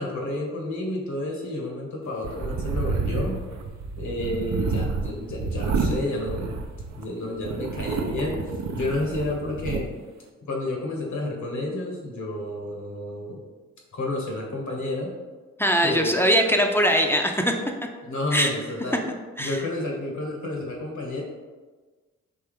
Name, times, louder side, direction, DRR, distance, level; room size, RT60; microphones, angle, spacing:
voice 1, 0.0-3.4 4.0-6.5 7.0-10.0 10.4-13.4 13.9-15.1 15.8-16.1 18.0-19.0 19.4-21.2, left 2 dB, 60° left, -1 dB, 1.4 m, -30 dB
sound 1, 2.2-7.0 7.4-9.8, right 4 dB, 55° right, 0.6 m, -29 dB
voice 2, 15.6-17.5 18.3-18.5 19.4-19.6, equal, 5° left, 3 dB, 0.6 m, -21 dB
4.5 x 2.8 x 3.5 m, 1.3 s
supercardioid pair, 45°, 33 cm